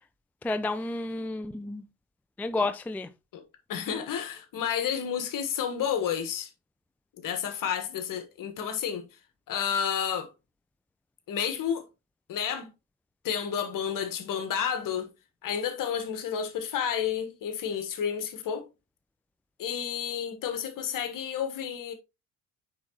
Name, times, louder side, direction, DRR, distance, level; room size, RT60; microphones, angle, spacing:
voice 1, 0.4-1.8 2.4-3.1, left 2 dB, 5° left, 0.4 m, -30 dB
voice 2, 3.7-6.5 7.2-9.1 9.5-10.3 11.3-11.9 12.3-12.7 13.2-15.1 15.4-18.7 19.6-21.9, left 8 dB, 50° left, 1.4 m, -31 dB
9.5 x 4.0 x 2.9 m
figure-of-eight pair, 55°, 42 cm